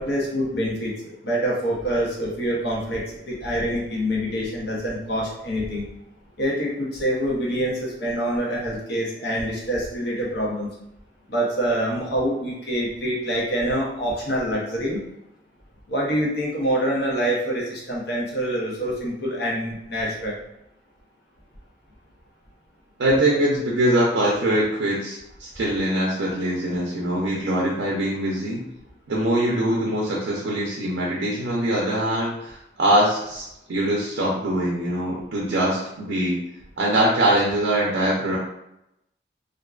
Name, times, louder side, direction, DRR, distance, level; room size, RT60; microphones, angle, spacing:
voice 1, 0.0-5.8 6.4-10.7 11.3-15.0 15.9-20.4 35.2-35.3, equal, 70° left, -3 dB, 0.7 m, -26 dB
voice 2, 23.0-28.6 29.1-36.4 36.8-38.4, right 1 dB, 90° right, -3 dB, 0.5 m, -23 dB
2.5 x 2.1 x 2.3 m, 0.85 s
head